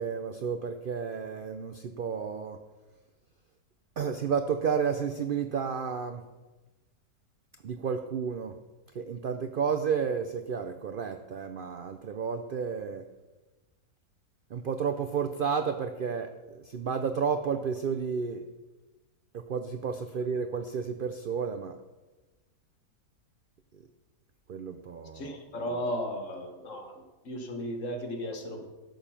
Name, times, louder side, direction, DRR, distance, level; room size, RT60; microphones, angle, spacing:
voice 1, 0.0-2.6 4.0-6.2 7.6-8.6 8.9-13.0 14.5-18.5 19.3-21.8 23.7-23.8 24.5-25.4, right 6 dB, 85° right, 8 dB, 0.4 m, -31 dB
voice 2, 25.1-26.9 27.3-28.7, equal, 55° left, 4 dB, 1.7 m, -35 dB
12.0 x 7.0 x 5.7 m, 1.2 s
omnidirectional pair, 1.6 m